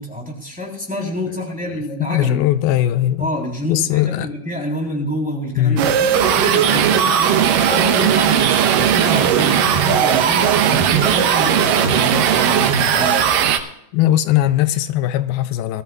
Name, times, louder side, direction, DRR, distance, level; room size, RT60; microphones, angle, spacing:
voice 1, 0.0-2.5 3.2-13.2, left 1 dB, ahead, 3.0 m, -27 dB
voice 2, 1.7-3.3 3.7-4.3 5.6-5.9 13.9-15.8, left 13 dB, 85° left, 2.5 m, -19 dB
sound 1, 5.8-13.6, right 8 dB, 70° right, 2.4 m, -16 dB
22.0 x 13.5 x 2.4 m
omnidirectional pair, 4.3 m